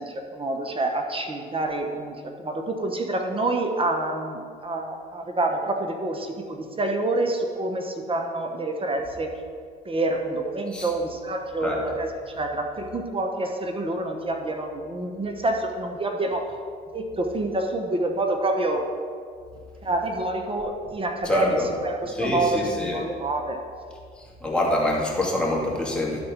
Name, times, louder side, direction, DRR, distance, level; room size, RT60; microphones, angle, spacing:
voice 1, 0.0-9.3 9.8-16.5 16.9-18.8 19.8-23.6, right 2 dB, 25° right, 4 dB, 1.0 m, -27 dB
voice 2, 21.2-21.7 22.0-23.0 24.2-26.2, left 1 dB, 5° left, -4 dB, 2.4 m, -25 dB
11.5 x 4.2 x 5.3 m, 2.2 s
supercardioid pair, 70°, 21 cm